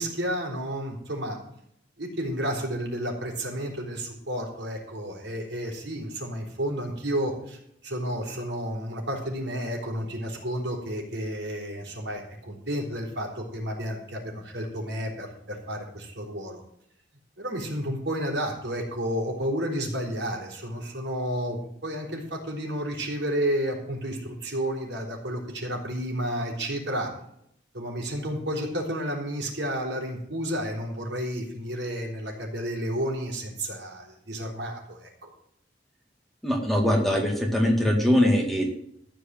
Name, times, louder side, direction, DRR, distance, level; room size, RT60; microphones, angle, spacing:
voice 1, 0.0-1.4 2.0-16.6 17.4-27.1 27.7-35.3, equal, 80° right, 0 dB, 4.0 m, -31 dB
voice 2, 36.4-38.7, left 1 dB, ahead, 0 dB, 2.1 m, -22 dB
14.5 x 5.1 x 9.2 m, 0.73 s
head